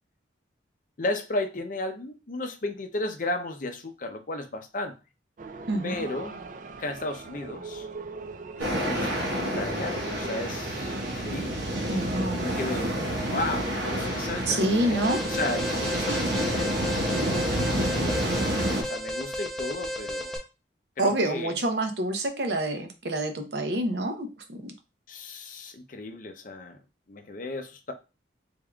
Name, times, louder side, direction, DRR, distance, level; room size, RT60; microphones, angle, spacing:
voice 1, 1.0-5.0 5.8-6.4 6.8-7.9 8.6-11.6 12.3-12.9 13.3-16.9 17.7-20.4 21.0-21.5 25.1-26.8 27.1-27.9, left 2 dB, 45° left, 0.5 m, -34 dB
sound 1, 5.4-12.9, right 4 dB, 45° right, 0.3 m, -41 dB
sound 2, 8.6-18.8, equal, 80° right, 1.2 m, -29 dB
voice 2, 11.9-12.5 14.5-15.2 21.0-24.7, right 1 dB, 60° right, 0.7 m, -27 dB
Alarm, 15.0-20.4, left 1 dB, 5° left, 0.6 m, -34 dB
3.5 x 3.5 x 2.3 m
head